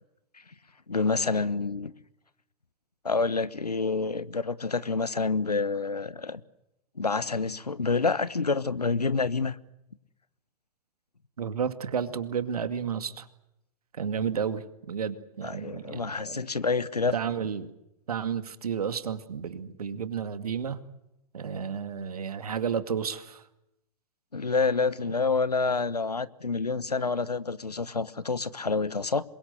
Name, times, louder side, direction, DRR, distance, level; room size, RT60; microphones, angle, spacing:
voice 1, 0.9-1.9 3.0-6.4 7.0-9.6 15.4-17.1 24.3-29.2, left 4 dB, 85° left, 1.2 m, -28 dB
voice 2, 11.4-13.3 13.9-16.5 17.1-17.7 18.1-20.8 21.3-23.4, right 7 dB, 70° right, 2.2 m, -32 dB
27.5 x 22.5 x 8.1 m
figure-of-eight pair, 105°, 20 cm